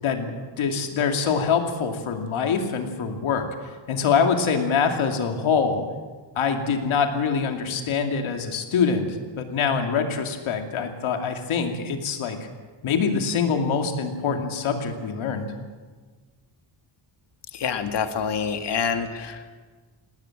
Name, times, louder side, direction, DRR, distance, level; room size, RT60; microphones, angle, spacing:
voice 1, 0.0-3.5 3.9-5.8 6.4-12.4 12.8-15.5, left 6 dB, 85° left, 4 dB, 2.7 m, -24 dB
voice 2, 17.6-19.4, left 6 dB, 60° left, 7 dB, 2.0 m, -26 dB
19.5 x 17.5 x 8.8 m, 1.4 s
cardioid pair, 135°, 47 cm